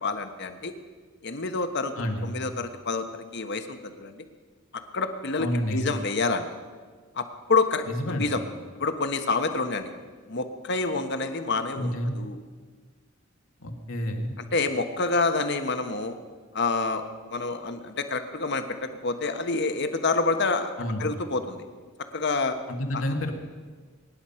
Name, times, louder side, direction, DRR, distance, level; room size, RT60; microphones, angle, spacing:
voice 1, 0.0-0.7 1.2-1.9 2.2-3.1 3.3-4.2 4.9-6.5 7.1-8.4 8.8-9.9 10.3-12.4 14.4-16.1 16.5-17.0 17.3-18.6 19.0-20.7 21.0-21.6 22.1-22.6 22.9-23.0, left 3 dB, 60° left, 8 dB, 1.3 m, -27 dB
voice 2, 2.0-2.4 5.4-5.9 7.9-8.4 11.8-12.2 13.6-14.4 20.8-21.1 22.7-23.3, equal, 90° left, 3 dB, 2.1 m, -29 dB
23.5 x 10.5 x 5.8 m, 1.5 s
head